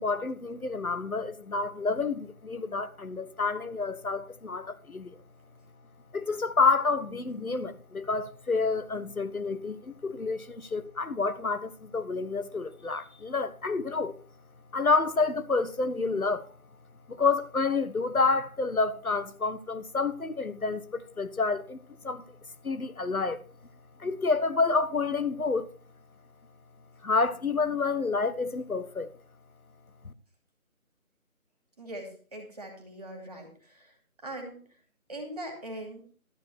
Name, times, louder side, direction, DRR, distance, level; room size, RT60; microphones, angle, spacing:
voice 1, 0.0-5.1 6.1-14.2 14.7-16.5 17.1-21.8 22.0-22.2 22.6-23.4 24.0-25.7 27.0-29.1 30.0-30.1, left 4 dB, 75° left, 1.3 m, -29 dB
voice 2, 31.8-33.9 34.2-34.6 35.1-36.0, right 1 dB, 25° right, 2.7 m, -41 dB
12.5 x 7.0 x 6.0 m
figure-of-eight pair, 165°, 43 cm